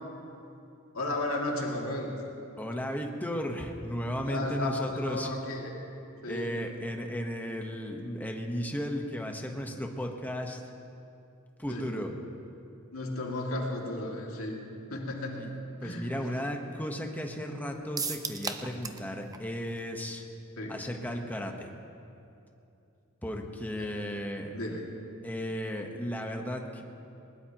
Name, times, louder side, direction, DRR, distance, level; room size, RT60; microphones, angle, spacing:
voice 1, 0.9-2.2 4.2-5.7 6.2-6.5 11.7-11.9 12.9-14.6 14.9-15.6 15.8-16.1 20.6-20.8 23.8-23.9 24.5-24.9, left 1 dB, 80° left, -1 dB, 2.3 m, -34 dB
voice 2, 2.6-5.3 6.3-10.6 11.6-12.1 15.4-15.5 15.8-20.2 20.7-21.7 23.2-24.6 25.2-26.8, equal, 10° left, 2 dB, 1.1 m, -35 dB
sound 1, 18.0-19.1 19.3-19.4 19.8-19.9, right 5 dB, 15° right, 0.6 m, -34 dB
21.0 x 20.0 x 3.0 m, 2.8 s
head